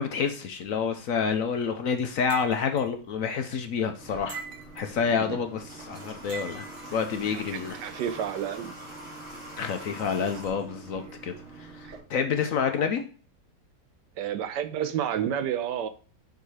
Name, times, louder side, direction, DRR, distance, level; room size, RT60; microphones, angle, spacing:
voice 1, 0.0-4.4 4.8-6.7 6.9-7.8 9.6-13.1, left 6 dB, 60° left, 1.0 m, -28 dB
sound 1, 2.3-2.9 4.3-5.0 6.3-6.9, right 6 dB, 60° right, 1.0 m, -41 dB
Water / Water tap faucet, 4.0-12.0, right 1 dB, 45° right, 3.6 m, -44 dB
voice 2, 7.3-8.7 11.0-11.1 11.8-12.0 14.2-15.9, right 9 dB, 80° right, 1.3 m, -31 dB
7.0 x 4.0 x 4.8 m
omnidirectional pair, 1.9 m